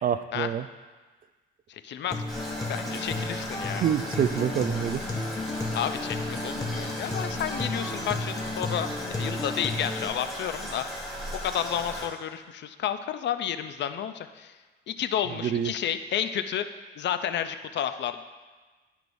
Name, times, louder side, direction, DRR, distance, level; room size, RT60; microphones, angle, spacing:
voice 1, 0.0-0.7 3.8-5.0 15.4-15.7, right 9 dB, 45° right, 12 dB, 0.4 m, -26 dB
voice 2, 1.7-2.2 2.7-3.9 5.7-11.0 11.4-14.5 14.9-16.6 17.0-18.2, left 9 dB, 65° left, 10 dB, 0.5 m, -31 dB
Acoustic guitar, 2.1-10.1, left 2 dB, 15° left, 1.0 m, -33 dB
Toilet flush, 2.3-12.1, equal, ahead, 2.3 m, -37 dB
12.0 x 4.7 x 2.6 m, 1.3 s
cardioid pair, 90°, 20 cm